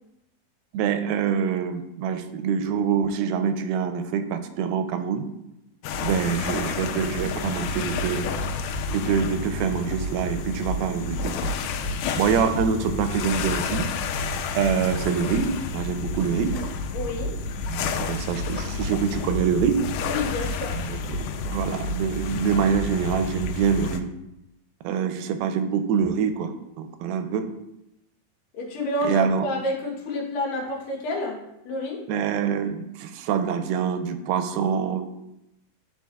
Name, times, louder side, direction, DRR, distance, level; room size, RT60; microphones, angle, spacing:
voice 1, 0.7-5.3 6.0-8.2 8.9-11.5 12.2-13.9 14.5-16.7 17.7-19.9 20.9-24.1 24.8-27.5 29.0-29.4 32.1-35.0, right 7 dB, 85° right, 9 dB, 2.4 m, -25 dB
sound 1, 5.8-24.0, left 4 dB, 90° left, 2.4 m, -30 dB
voice 2, 16.9-17.4 20.1-20.8 28.5-31.4 31.7-32.0, left 1 dB, 70° left, 0 dB, 2.7 m, -29 dB
11.5 x 4.5 x 2.3 m, 0.86 s
omnidirectional pair, 4.2 m